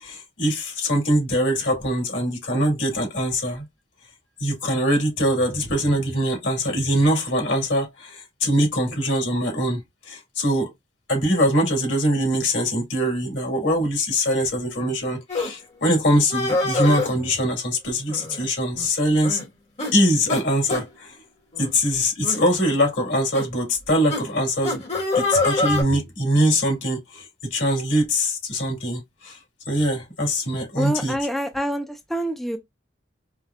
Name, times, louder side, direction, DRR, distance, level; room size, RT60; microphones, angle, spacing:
voice 1, 0.0-3.6 4.4-9.8 10.1-10.7 11.1-19.4 19.9-21.2 21.6-24.8 25.1-29.4 29.7-31.1, equal, 85° left, 2.2 m, -22 dB
sound 1, 15.3-15.5 16.3-17.1 18.1-18.5 18.8-18.9 19.2-19.5 19.8-19.9 20.3-20.4 20.7-20.8 21.5-21.7 22.2-22.4 23.3-23.5 24.1-24.2 24.6-25.8, left 3 dB, 35° left, 1.4 m, -25 dB
voice 2, 30.8-32.6, equal, ahead, 0.4 m, -26 dB
4.9 x 2.1 x 2.2 m
head